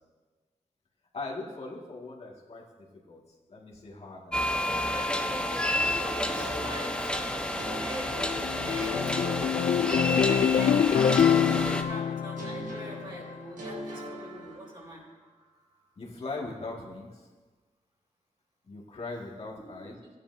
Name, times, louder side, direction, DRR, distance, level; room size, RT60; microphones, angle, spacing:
voice 1, 1.1-3.2 3.5-5.1 9.7-10.3 16.0-17.3 18.6-20.0, left 3 dB, 55° left, -4 dB, 2.2 m, -41 dB
sound 1, 4.3-11.8, left 1 dB, 5° left, 0.9 m, -30 dB
voice 2, 4.7-9.0 9.8-15.0 19.6-19.7 20.0-20.1, right 1 dB, 40° right, -4 dB, 4.0 m, -43 dB
sound 2, 6.4-10.3 11.2-15.0, left 1 dB, 85° right, 1.7 m, -41 dB
sound 3, 7.7-13.3, left 8 dB, 80° left, 0.5 m, -26 dB
16.0 x 10.0 x 2.8 m, 1.3 s
cardioid pair, 85°, 13 cm